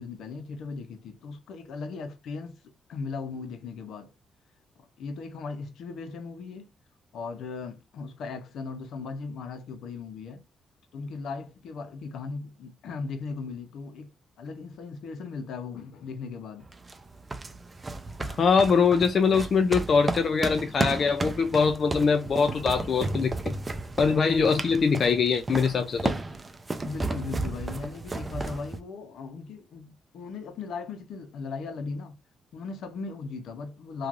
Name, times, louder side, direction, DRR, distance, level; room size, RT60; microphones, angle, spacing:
voice 1, 0.0-2.6 2.9-4.1 4.8-6.7 7.1-10.4 10.9-14.1 14.4-16.7 23.7-23.9 26.8-32.2 32.5-34.1, left 4 dB, 75° left, 0.7 m, -37 dB
sound 1, 16.6-28.8, right 2 dB, 25° right, 0.4 m, -34 dB
voice 2, 18.2-23.5 24.0-26.1, left 5 dB, 45° left, 0.4 m, -23 dB
3.1 x 2.4 x 2.5 m
cardioid pair, 110°, 0 cm